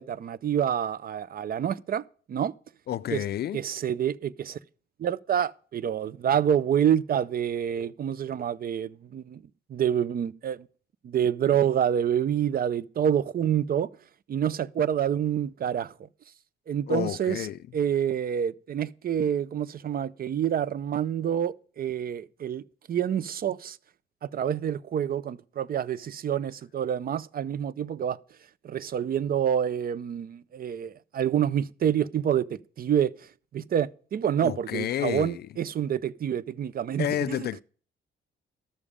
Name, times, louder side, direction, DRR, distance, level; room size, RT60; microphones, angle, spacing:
voice 1, 0.0-2.0 2.3-2.5 3.1-3.2 3.5-4.6 5.0-9.4 9.7-10.7 11.0-13.9 14.3-15.9 16.7-17.5 17.7-22.6 22.9-23.8 24.2-28.2 28.6-33.1 33.5-37.5, right 9 dB, 50° right, 0.5 m, -27 dB
voice 2, 2.9-3.6 16.9-17.6 34.4-35.5 37.0-37.6, left 12 dB, 55° left, 0.4 m, -30 dB
12.5 x 7.1 x 5.0 m
cardioid pair, 90°, 20 cm